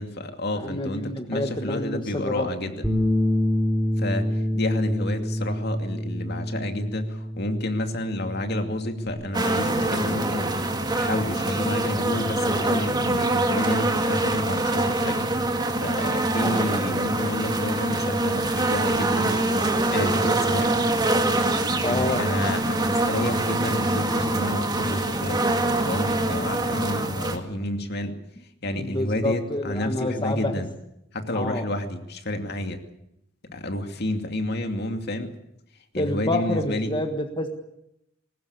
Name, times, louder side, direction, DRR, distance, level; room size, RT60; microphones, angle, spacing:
voice 1, 0.0-2.8 4.0-4.3 4.5-10.5 11.0-15.3 15.8-19.6 19.9-20.7 21.7-28.1 28.6-30.7 31.1-32.8 33.5-35.3 35.9-36.9, left 1 dB, 55° left, 6 dB, 2.5 m, -30 dB
voice 2, 0.5-2.5 19.9-20.1 21.8-22.2 28.6-30.6 31.3-31.6 36.0-37.5, left 1 dB, 25° left, 5 dB, 1.5 m, -28 dB
Bass guitar, 2.8-9.1, left 1 dB, ahead, 3.2 m, -27 dB
sound 1, 9.3-27.4, right 2 dB, 20° right, 2.1 m, -24 dB
21.5 x 19.5 x 8.4 m, 0.79 s
head